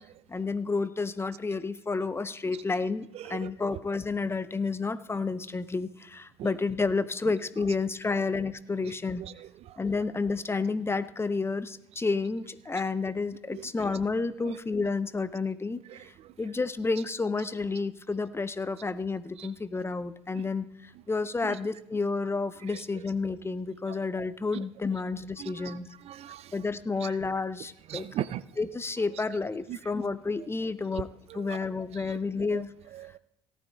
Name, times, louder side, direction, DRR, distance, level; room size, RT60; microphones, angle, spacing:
voice 1, 0.3-9.2 9.8-16.1 16.4-25.9 26.5-28.1 28.6-31.1 31.3-32.7, left 4 dB, 15° left, 13 dB, 0.7 m, -30 dB
voice 2, 3.1-3.8 6.4-6.5 7.3-7.4 7.7-7.8 8.1-8.2 8.8-9.3 13.5-13.7 15.9-16.0 16.9-17.0 19.4-19.5 20.3-20.4 21.4-21.6 22.7-22.8 24.5-24.6 25.4-25.7 26.1-26.4 27.0-27.1 27.9-28.4 29.1-29.2 29.7-29.8 31.3-31.6 32.1-32.2 32.5-32.6 32.9-33.2, right 11 dB, 45° right, 18 dB, 0.4 m, -39 dB
18.0 x 12.0 x 2.3 m, 0.76 s
figure-of-eight pair, 60°, 14 cm